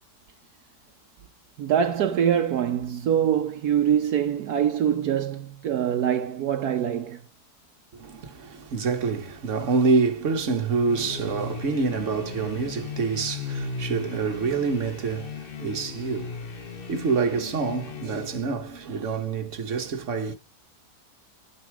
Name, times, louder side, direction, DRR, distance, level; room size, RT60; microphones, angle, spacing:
voice 1, 1.6-7.2, right 9 dB, 75° right, 1.3 m, -24 dB
voice 2, 7.9-20.4, right 4 dB, 50° right, 1.6 m, -27 dB
sound 1, 10.8-18.7, left 5 dB, 40° left, 1.0 m, -37 dB
11.5 x 9.3 x 4.8 m
omnidirectional pair, 1.7 m